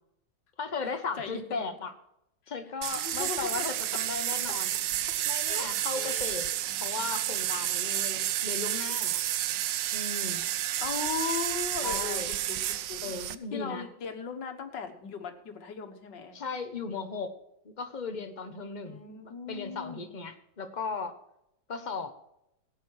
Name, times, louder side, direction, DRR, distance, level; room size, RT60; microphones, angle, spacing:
voice 1, 0.6-1.9 2.5-4.7 5.2-6.5 6.8-9.2 9.9-10.5 11.8-12.3 13.0-13.9 16.3-17.3 17.6-21.2 21.7-22.1, left 4 dB, 30° left, 7 dB, 1.1 m, -36 dB
sound 1, 2.8-13.4, right 13 dB, 90° right, 1.4 m, -31 dB
voice 2, 2.9-3.5 4.5-4.6 5.4-5.7 6.0-6.4 10.8-13.1 13.5-16.4 18.9-20.1, left 5 dB, 80° left, 6 dB, 2.1 m, -38 dB
16.5 x 9.2 x 4.8 m, 0.80 s
omnidirectional pair, 1.9 m